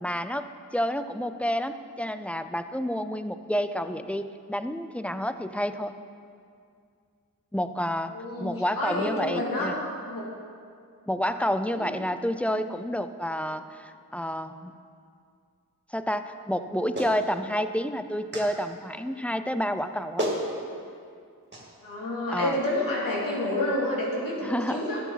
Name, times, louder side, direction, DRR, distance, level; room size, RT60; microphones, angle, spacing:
voice 1, 0.0-5.9 7.5-8.1 8.4-9.8 11.1-14.7 15.9-20.3 22.3-22.6 24.4-24.8, equal, 5° left, 10 dB, 0.5 m, -29 dB
voice 2, 8.1-9.7 10.0-10.2 11.7-11.8 12.4-12.6 21.8-25.0, left 1 dB, 70° left, -5 dB, 2.9 m, -29 dB
Clapping, 17.0-17.2 18.3-18.5 19.8-19.9 20.2-20.4 21.5-21.7, right 1 dB, 30° right, 2.4 m, -29 dB
12.5 x 8.3 x 4.1 m, 2.3 s
cardioid pair, 55°, 35 cm